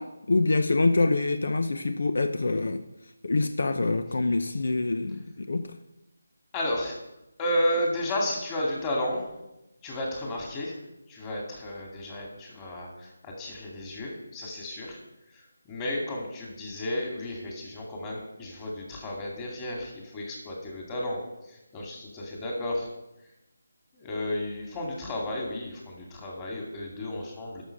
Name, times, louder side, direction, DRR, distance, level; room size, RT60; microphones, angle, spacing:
voice 1, 0.0-2.8 3.2-5.8, left 3 dB, 65° left, 9 dB, 0.7 m, -25 dB
voice 2, 6.5-6.9 7.4-9.3 9.8-10.8 11.1-15.0 15.3-22.9 23.9-27.6, left 1 dB, 15° left, -1 dB, 2.3 m, -32 dB
11.5 x 6.4 x 6.5 m, 0.92 s
figure-of-eight pair, 165°, 0 cm